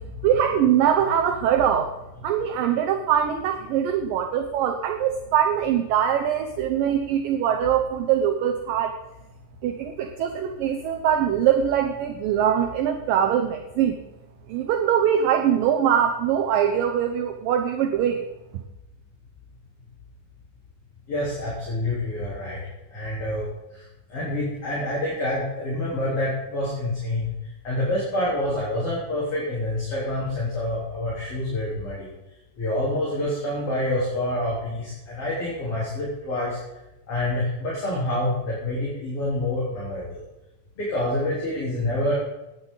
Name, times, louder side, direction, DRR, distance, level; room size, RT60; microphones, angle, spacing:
voice 1, 0.2-1.9 2.2-8.9 9.6-14.0 14.5-18.3, right 9 dB, 75° right, 5 dB, 2.2 m, -22 dB
voice 2, 21.1-22.6 22.9-23.5 24.1-27.3 27.6-32.1 32.6-36.6 37.1-40.2 40.8-42.2, left 1 dB, 35° left, -7 dB, 4.5 m, -27 dB
18.0 x 10.5 x 4.0 m, 0.98 s
omnidirectional pair, 4.8 m